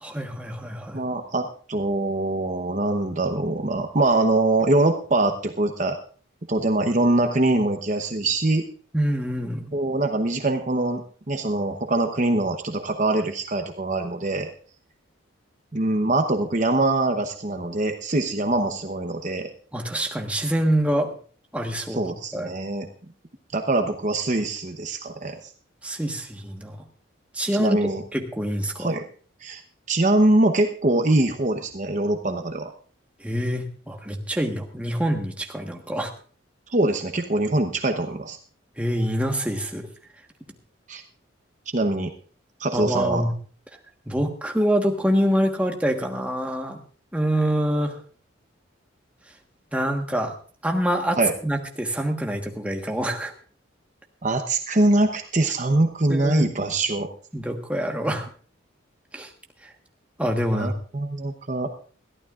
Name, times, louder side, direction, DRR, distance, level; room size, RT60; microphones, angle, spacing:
voice 1, 0.0-1.0 8.9-9.7 19.7-21.1 21.5-22.5 25.8-26.8 27.3-27.8 28.1-28.9 33.2-36.1 38.8-39.9 42.7-43.3 44.1-46.8 47.1-48.0 49.7-50.3 50.6-53.3 56.1-56.5 57.3-58.3 59.1-59.3 60.2-60.7, equal, 5° right, 2 dB, 1.3 m, -25 dB
voice 2, 0.9-6.0 6.5-8.6 9.7-14.5 15.7-19.5 22.0-22.9 23.5-25.5 27.6-28.0 28.8-29.0 29.4-29.6 29.9-32.7 36.7-38.4 40.9-41.0 41.7-42.1 42.6-43.2 51.2-51.3 54.2-57.1 60.5-61.7, right 2 dB, 40° right, 5 dB, 0.9 m, -23 dB
21.5 x 14.0 x 2.5 m, 0.43 s
head